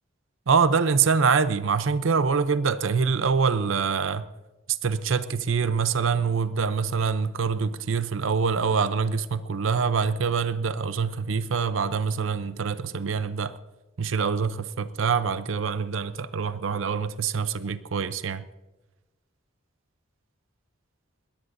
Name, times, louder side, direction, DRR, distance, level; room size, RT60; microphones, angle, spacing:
voice 1, 0.5-4.2 4.8-13.6 14.0-18.4, right 5 dB, 70° right, 0.6 m, -25 dB
21.0 x 17.5 x 2.6 m
head